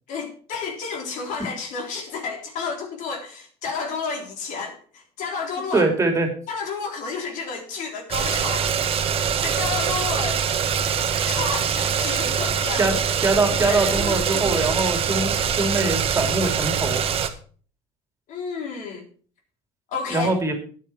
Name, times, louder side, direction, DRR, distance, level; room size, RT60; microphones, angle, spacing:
voice 1, 0.1-5.9 6.5-8.7 9.2-10.4 11.2-12.9 13.5-15.0 18.3-19.1 19.9-20.4, left 5 dB, 60° left, 3.7 m, -31 dB
voice 2, 5.7-6.3 12.8-17.0 20.1-20.5, right 3 dB, 20° right, 3.0 m, -23 dB
sound 1, 8.1-17.3, right 7 dB, 40° right, 1.4 m, -24 dB
12.0 x 9.5 x 4.5 m
supercardioid pair, 105°, 15 cm